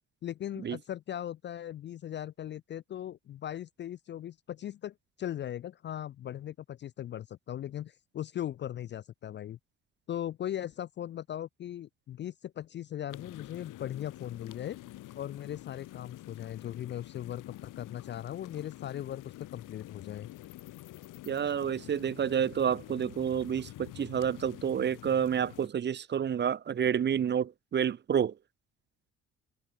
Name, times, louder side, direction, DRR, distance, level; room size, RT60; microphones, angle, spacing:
voice 1, 0.2-9.6 10.1-14.8 15.2-20.3, left 11 dB, 35° left, 0.4 m, -39 dB
sound 1, 13.1-25.7, left 16 dB, 65° left, 3.9 m, -48 dB
voice 2, 21.3-28.3, right 8 dB, 30° right, 0.7 m, -29 dB
hypercardioid pair, 55°, 34 cm